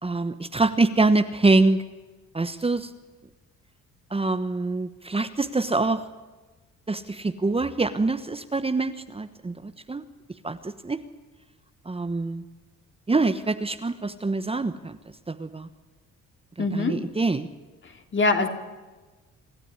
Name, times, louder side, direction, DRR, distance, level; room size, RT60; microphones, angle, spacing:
voice 1, 0.0-1.8 2.3-2.9 4.1-6.0 6.9-10.0 10.4-11.0 11.9-12.4 13.1-15.0 15.3-15.7 16.6-17.5, right 3 dB, 20° right, 9 dB, 1.2 m, -25 dB
voice 2, 16.6-17.0 18.1-18.5, left 3 dB, 40° left, 5 dB, 3.0 m, -22 dB
26.5 x 13.0 x 9.9 m, 1.2 s
cardioid pair, 90°, 30 cm